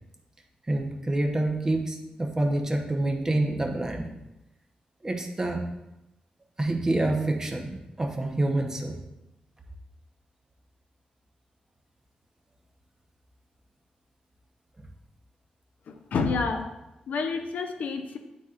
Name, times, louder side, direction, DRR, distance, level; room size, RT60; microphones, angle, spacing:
voice 1, 0.7-4.1 5.0-5.7 6.6-9.0, right 2 dB, 20° right, 2 dB, 0.9 m, -27 dB
voice 2, 15.9-16.7 17.1-18.2, left 4 dB, 80° left, 6 dB, 0.6 m, -29 dB
9.8 x 4.1 x 2.5 m, 0.94 s
cardioid pair, 100°, 3 cm